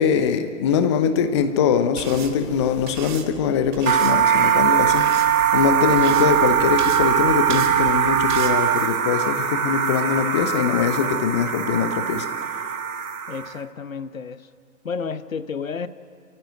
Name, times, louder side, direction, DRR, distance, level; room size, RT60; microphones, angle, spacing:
voice 1, 0.0-12.6, left 7 dB, 20° left, 9 dB, 0.8 m, -22 dB
sound 1, 2.0-8.6, right 8 dB, 30° right, 1.7 m, -36 dB
sound 2, 3.9-13.6, right 8 dB, 65° right, 1.4 m, -21 dB
voice 2, 13.3-14.5 14.8-15.9, left 5 dB, 60° left, 14 dB, 1.1 m, -31 dB
28.0 x 15.0 x 9.4 m, 2.7 s
figure-of-eight pair, 125°, 45 cm